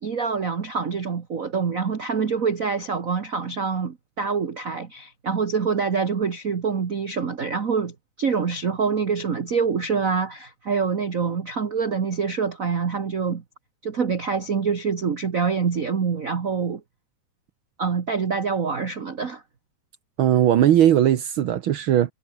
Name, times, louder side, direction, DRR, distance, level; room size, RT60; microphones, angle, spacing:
voice 1, 0.0-13.4 13.8-16.8 17.8-19.4, right 5 dB, 50° right, 1.0 m, -25 dB
voice 2, 20.2-22.1, right 11 dB, 90° right, 1.1 m, -18 dB
omnidirectional pair, 3.8 m